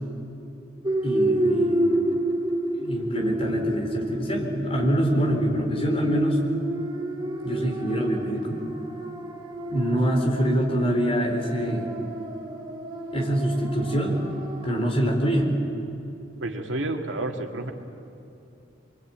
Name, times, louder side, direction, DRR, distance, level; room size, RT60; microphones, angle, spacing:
sound 1, 0.8-15.0, right 1 dB, 25° right, 3.2 m, -29 dB
voice 1, 1.0-2.0 2.7-6.4 7.4-8.7 9.7-12.0 13.1-14.2 14.6-15.6, right 1 dB, 30° left, 0 dB, 4.2 m, -25 dB
voice 2, 16.4-17.7, right 2 dB, 75° right, 3 dB, 2.2 m, -30 dB
25.5 x 24.0 x 8.8 m, 2.8 s
head